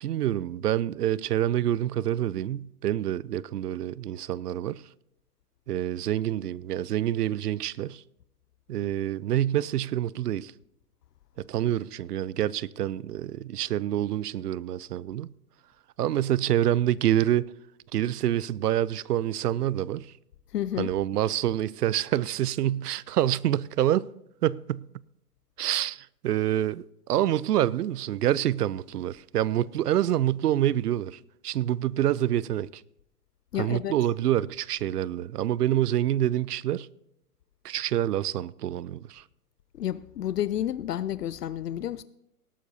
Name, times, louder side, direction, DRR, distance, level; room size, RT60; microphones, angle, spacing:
voice 1, 0.0-4.8 5.7-8.0 8.7-10.5 11.4-15.3 16.0-17.5 17.9-20.1 20.8-24.1 24.4-24.9 25.6-32.8 33.6-36.9 37.6-39.2, right 12 dB, 80° right, 0.5 m, -27 dB
voice 2, 20.5-20.9 33.5-33.9 39.8-42.0, left 11 dB, 85° left, 0.6 m, -30 dB
19.0 x 12.5 x 2.7 m
hypercardioid pair, 125°, 46 cm